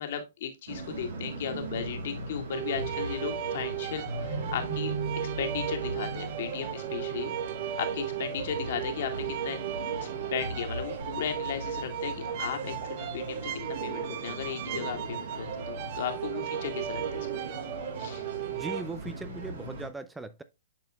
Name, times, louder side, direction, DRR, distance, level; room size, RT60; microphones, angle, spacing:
voice 1, 0.0-4.9 5.4-7.3 7.8-9.6 10.0-13.4 13.8-17.4 18.0-18.2, left 8 dB, 60° left, 1.8 m, -36 dB
sound 1, 0.7-19.9, right 2 dB, 70° right, 3.7 m, -38 dB
sound 2, 2.5-18.8, right 10 dB, 45° right, 0.7 m, -36 dB
voice 2, 18.5-20.4, right 3 dB, 5° right, 0.5 m, -39 dB
10.5 x 4.3 x 2.3 m
hypercardioid pair, 130°, 0 cm